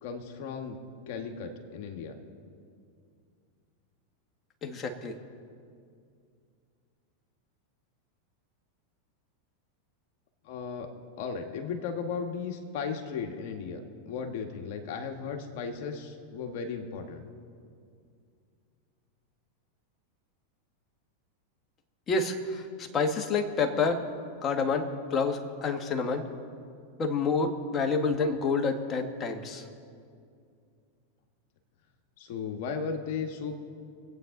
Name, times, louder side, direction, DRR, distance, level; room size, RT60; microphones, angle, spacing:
voice 1, 0.0-0.8 1.1-2.2 10.4-10.9 11.2-17.2 32.2-33.5, left 5 dB, 55° left, 3 dB, 1.8 m, -36 dB
voice 2, 4.6-5.1 22.1-24.0 24.4-26.2 27.0-29.6, left 4 dB, 30° left, 4 dB, 1.7 m, -28 dB
25.0 x 8.8 x 4.0 m, 2.3 s
hypercardioid pair, 95°, 0 cm